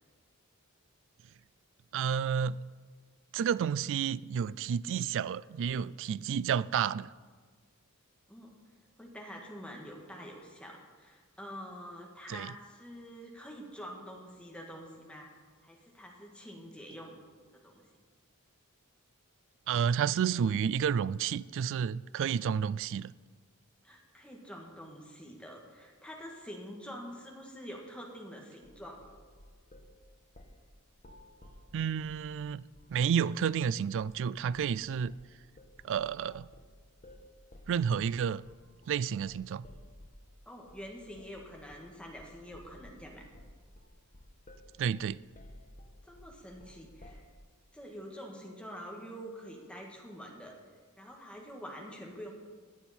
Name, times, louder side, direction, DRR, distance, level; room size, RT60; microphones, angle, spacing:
voice 1, 1.9-2.6 3.3-7.1 12.3-12.5 19.7-23.1 31.7-32.6 32.9-35.1 35.8-36.5 37.7-38.4 38.9-39.7 44.8-45.2, right 7 dB, 60° right, 0.3 m, -30 dB
voice 2, 9.0-15.3 15.6-17.1 17.6-17.8 23.8-29.0 40.4-43.3 46.1-47.2 47.7-50.5 51.0-52.3, equal, 5° left, 1.7 m, -46 dB
sound 1, 28.6-29.9 30.3-30.6 30.9-32.3 32.7-33.0 33.4-33.6 34.0-34.2 34.5-34.8 35.0-40.3 40.7-40.9 41.1-41.4 41.7-41.9 42.2-47.3, left 1 dB, 35° left, 1.3 m, -54 dB
16.0 x 9.9 x 4.4 m
head